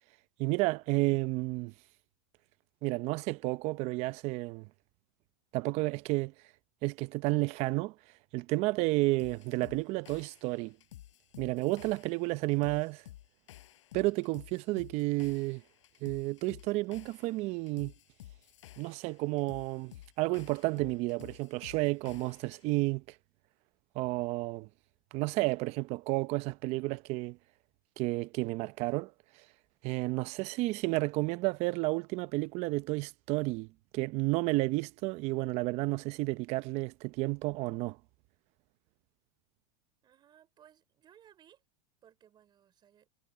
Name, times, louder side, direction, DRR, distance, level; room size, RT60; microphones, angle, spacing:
voice 1, 0.4-1.7 2.8-4.7 5.5-6.3 6.8-7.9 8.3-10.8 11.4-13.0 13.9-15.6 16.0-17.9 18.8-23.0 23.9-24.7 25.1-27.4 28.0-29.1 29.8-33.7 33.9-38.0, right 22 dB, 45° right, 0.7 m, -31 dB
sound 1, 9.2-22.8, left 14 dB, 80° left, 4.7 m, -53 dB
voice 2, 40.0-41.6 42.0-43.1, right 10 dB, 30° right, 4.9 m, -61 dB
supercardioid pair, 135°, 16 cm